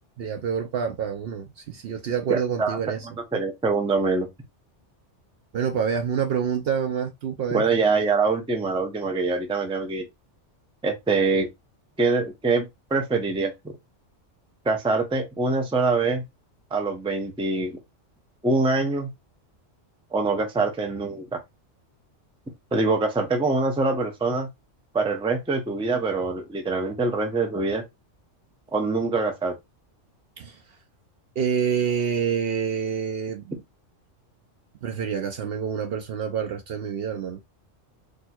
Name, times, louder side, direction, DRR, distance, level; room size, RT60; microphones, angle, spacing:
voice 1, 0.2-3.0 5.5-7.6 30.4-30.6 31.4-33.6 34.8-37.4, right 7 dB, 65° right, 0.7 m, -27 dB
voice 2, 2.3-4.3 7.5-10.0 10.8-11.5 12.0-12.7 12.9-13.5 14.6-16.2 16.7-17.8 18.4-19.1 20.1-21.4 22.7-24.5 24.9-27.8 28.7-29.5, right 3 dB, 5° right, 0.4 m, -24 dB
4.3 x 2.6 x 2.3 m
omnidirectional pair, 1.3 m